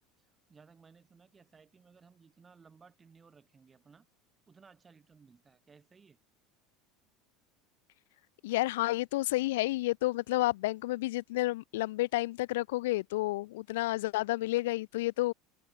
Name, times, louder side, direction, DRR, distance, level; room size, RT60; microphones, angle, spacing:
voice 1, 0.0-4.1 4.5-6.2, right 5 dB, 20° right, 6.0 m, -60 dB
voice 2, 8.4-15.3, left 18 dB, 90° left, 0.7 m, -30 dB
supercardioid pair, 135°, 0 cm